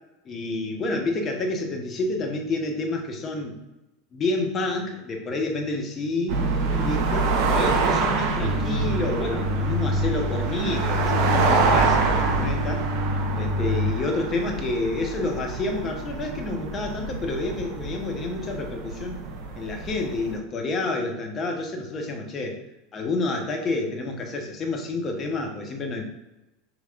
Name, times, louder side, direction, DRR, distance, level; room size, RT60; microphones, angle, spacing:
voice 1, 0.2-3.6 4.1-6.4 6.7-12.8 13.4-19.2 19.6-22.6 22.9-26.0, left 2 dB, 30° left, 2 dB, 0.8 m, -29 dB
sound 1, 6.3-20.4, right 4 dB, 55° right, 0.6 m, -26 dB
sound 2, 8.4-13.9, equal, 65° left, 0.9 m, -27 dB
5.4 x 3.0 x 2.4 m, 1.0 s
figure-of-eight pair, 80°, 0 cm